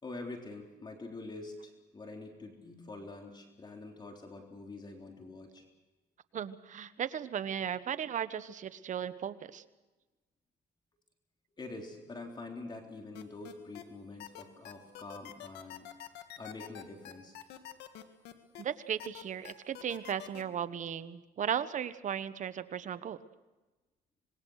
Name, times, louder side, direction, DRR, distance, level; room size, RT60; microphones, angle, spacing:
voice 1, 0.0-5.6 11.6-15.9 16.4-17.4, left 2 dB, 25° left, 2 dB, 3.7 m, -45 dB
voice 2, 6.3-9.6 18.6-23.2, right 9 dB, 45° right, 13 dB, 1.1 m, -36 dB
sound 1, 13.1-13.8 14.2-18.6 19.0-20.4, left 12 dB, 80° left, 1.9 m, -46 dB
26.0 x 21.0 x 6.5 m, 1.1 s
cardioid pair, 110°, 17 cm